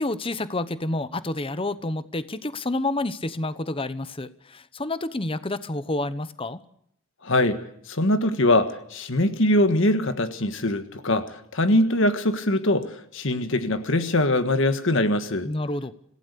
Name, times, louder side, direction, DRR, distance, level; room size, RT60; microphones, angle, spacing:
voice 1, 0.0-6.6 15.5-15.9, left 2 dB, 25° left, 14 dB, 0.9 m, -29 dB
voice 2, 7.2-7.6 7.9-15.5, left 1 dB, 60° left, 9 dB, 1.5 m, -22 dB
26.5 x 16.5 x 6.8 m, 0.70 s
head